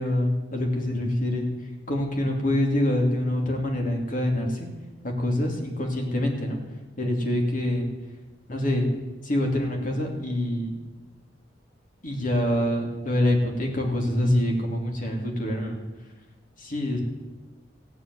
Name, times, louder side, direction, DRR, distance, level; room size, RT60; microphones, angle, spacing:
voice 1, 0.0-1.5 1.9-4.7 5.0-6.6 7.0-7.9 8.5-8.9 9.2-10.8 12.0-15.8 16.6-17.0, left 1 dB, 45° left, 1 dB, 2.8 m, -25 dB
15.0 x 7.7 x 9.6 m, 1.2 s
head